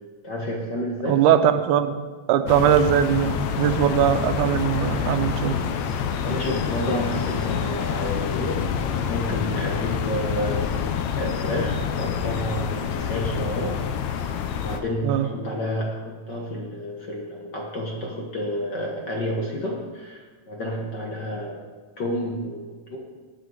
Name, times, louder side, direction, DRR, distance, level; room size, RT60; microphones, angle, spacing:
voice 1, 0.2-1.2 6.2-13.8 14.5-21.7 22.0-23.0, equal, 50° left, -1 dB, 1.4 m, -30 dB
voice 2, 1.1-5.6 15.0-15.3, right 9 dB, 90° right, 7 dB, 2.1 m, -21 dB
sound 1, 2.5-14.8, left 7 dB, 75° left, 2.0 m, -27 dB
19.0 x 6.4 x 4.8 m, 1.4 s
omnidirectional pair, 3.5 m